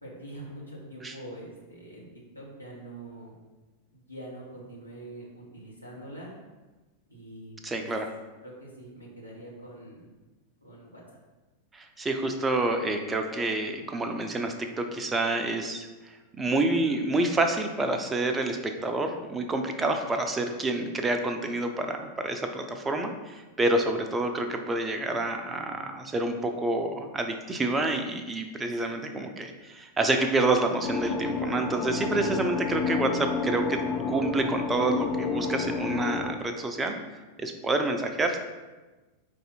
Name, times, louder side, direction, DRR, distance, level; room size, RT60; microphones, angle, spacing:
voice 1, 0.0-2.1 2.3-3.4 3.9-6.3 7.1-7.9 8.4-10.1 10.6-11.2 28.8-29.1, right 1 dB, 90° left, -5 dB, 1.3 m, -44 dB
voice 2, 7.6-8.1 11.7-33.8 34.1-37.0 37.4-38.4, right 2 dB, 15° right, 5 dB, 0.5 m, -28 dB
sound 1, 30.8-36.3, left 4 dB, 30° left, 0.6 m, -30 dB
4.7 x 2.6 x 4.2 m, 1.2 s
figure-of-eight pair, 90°, 0 cm